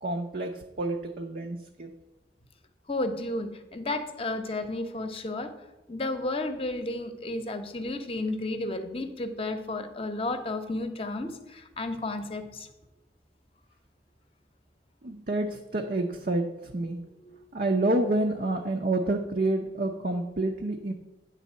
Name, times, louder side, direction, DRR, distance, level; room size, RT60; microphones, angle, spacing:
voice 1, 0.0-1.9 15.0-17.0 17.5-20.9, right 2 dB, 50° right, 3 dB, 0.7 m, -28 dB
voice 2, 2.9-5.5 5.9-12.7 17.2-17.4, left 2 dB, 30° left, 8 dB, 0.8 m, -32 dB
9.8 x 4.0 x 7.4 m, 1.0 s
head